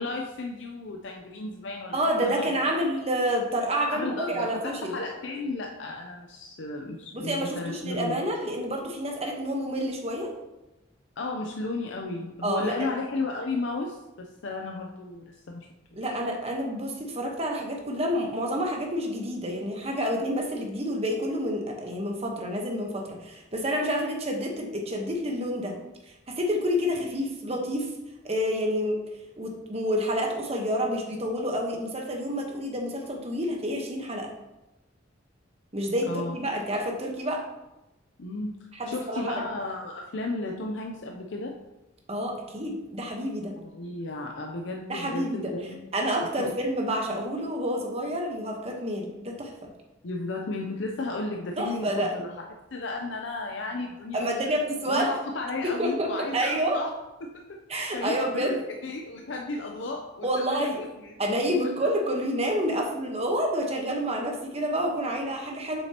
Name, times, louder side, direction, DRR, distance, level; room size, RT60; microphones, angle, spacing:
voice 1, 0.0-2.5 3.9-8.2 11.2-16.1 36.1-36.4 38.2-41.6 43.6-45.9 46.4-46.5 50.0-54.3 54.9-57.6 57.9-61.1 61.8-61.9, left 2 dB, 65° left, 2 dB, 0.6 m, -34 dB
voice 2, 1.9-4.9 7.1-10.3 12.4-12.9 16.0-25.8 26.3-27.9 28.2-29.0 29.4-34.3 35.7-37.4 38.7-39.4 42.1-43.5 44.9-45.5 45.9-49.5 51.6-52.1 54.1-55.1 55.6-56.8 57.7-58.6 60.2-60.8 61.2-65.8, equal, 35° right, 1 dB, 1.1 m, -28 dB
7.3 x 6.2 x 2.9 m, 1.0 s
head